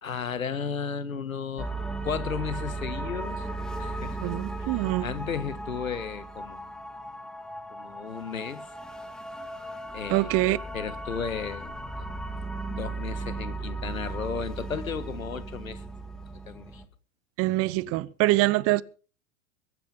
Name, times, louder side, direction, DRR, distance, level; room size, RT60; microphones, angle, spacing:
voice 1, 0.0-1.7 2.0-3.5 3.8-4.2 4.6-6.6 7.7-8.7 9.9-10.3 10.7-12.1 12.6-15.8 16.5-16.8, left 6 dB, 80° left, 1.6 m, -34 dB
sound 1, 1.6-16.9, right 2 dB, ahead, 2.5 m, -36 dB
voice 2, 4.2-5.1 10.1-10.6 17.4-18.8, right 19 dB, 35° right, 0.8 m, -24 dB
23.0 x 9.6 x 5.5 m
figure-of-eight pair, 90°, 40 cm